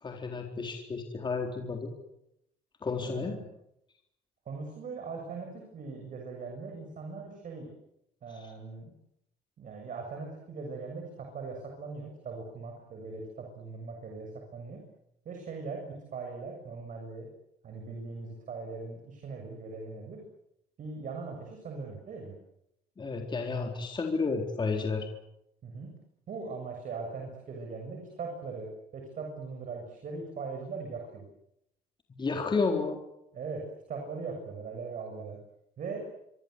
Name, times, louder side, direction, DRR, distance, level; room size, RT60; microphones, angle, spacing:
voice 1, 0.0-1.9 2.8-3.4 23.0-25.1 32.2-33.0, left 4 dB, 25° left, 2 dB, 4.0 m, -31 dB
voice 2, 2.9-3.4 4.5-7.7 8.2-8.9 9.6-14.8 15.3-17.3 17.6-20.2 20.8-22.4 25.6-25.9 26.3-31.3 33.3-33.6 33.9-35.4 35.8-36.0, right 4 dB, 50° right, 2 dB, 7.4 m, -40 dB
26.0 x 24.5 x 8.2 m, 0.81 s
cardioid pair, 110°, 17 cm